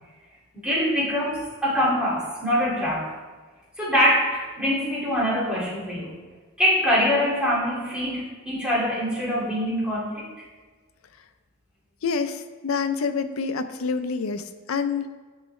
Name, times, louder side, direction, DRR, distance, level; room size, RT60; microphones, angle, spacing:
voice 1, 0.6-3.1 3.8-6.2 6.6-10.3, equal, 5° right, -7 dB, 2.2 m, -24 dB
voice 2, 12.0-15.1, left 5 dB, 75° left, 9 dB, 0.5 m, -27 dB
9.9 x 5.5 x 3.2 m, 1.4 s
head